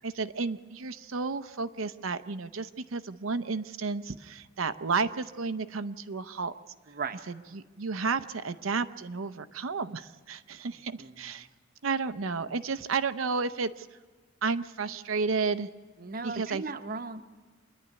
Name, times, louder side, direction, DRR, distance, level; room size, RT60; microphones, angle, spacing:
voice 1, 0.0-6.5 7.3-11.5 11.8-13.9 14.4-15.7 16.2-16.6, right 4 dB, 80° right, 13 dB, 0.7 m, -32 dB
voice 2, 6.9-7.2 11.0-11.3 16.0-17.2, right 4 dB, 45° right, 9 dB, 0.9 m, -37 dB
26.0 x 11.0 x 9.7 m, 1.4 s
head